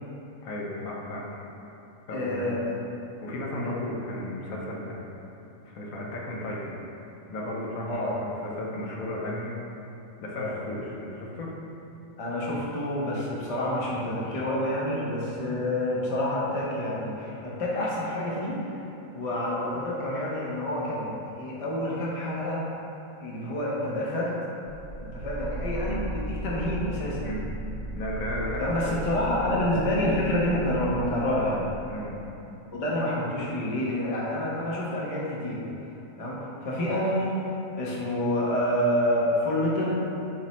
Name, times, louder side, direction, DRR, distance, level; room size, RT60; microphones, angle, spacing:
voice 1, 0.4-1.5 2.1-2.8 3.2-5.1 5.7-6.8 7.3-9.5 10.2-11.5 25.8-26.1 27.2-27.5 28.0-29.6 31.9-32.2, left 1 dB, 80° left, -2 dB, 1.1 m, -35 dB
voice 2, 2.1-2.8 3.6-3.8 7.9-8.2 10.3-10.6 12.2-18.8 19.1-22.7 23.2-24.4 25.0-27.3 28.6-31.7 32.7-35.6 36.2-40.0, left 1 dB, 45° left, -5 dB, 0.5 m, -28 dB
sound 1, 24.7-32.5, right 1 dB, 55° right, 0.9 m, -36 dB
5.0 x 2.0 x 4.1 m, 2.9 s
omnidirectional pair, 1.4 m